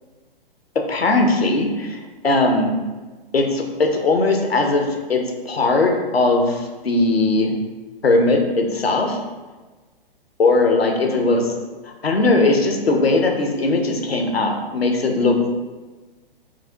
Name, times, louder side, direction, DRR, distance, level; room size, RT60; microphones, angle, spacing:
voice 1, 0.9-2.8 3.3-7.5 8.0-9.2 10.4-11.5 11.8-15.5, left 2 dB, 85° left, 2 dB, 0.7 m, -19 dB
4.7 x 2.1 x 3.7 m, 1.3 s
figure-of-eight pair, 120°, 30 cm